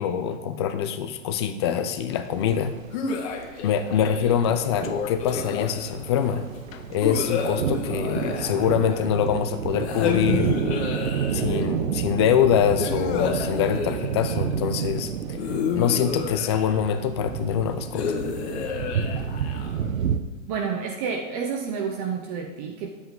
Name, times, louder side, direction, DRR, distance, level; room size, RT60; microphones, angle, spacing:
voice 1, 0.0-2.7 3.6-6.5 6.9-10.5 11.3-15.4 15.7-18.1, left 8 dB, 20° left, 8 dB, 0.3 m, -24 dB
sound 1, 2.1-20.2, right 8 dB, 80° right, 0.9 m, -30 dB
sound 2, 2.9-4.4 5.2-6.1 7.0-9.2 9.8-11.7 12.8-14.5 15.4-17.0 17.9-19.9, left 6 dB, 50° left, 1.6 m, -30 dB
sound 3, 4.7-8.7 9.1-10.1 10.5-11.5, left 8 dB, 75° left, 0.8 m, -37 dB
voice 2, 20.5-22.9, right 6 dB, 30° right, 3 dB, 0.7 m, -29 dB
10.0 x 8.1 x 3.8 m, 1.2 s
hypercardioid pair, 135°, 40 cm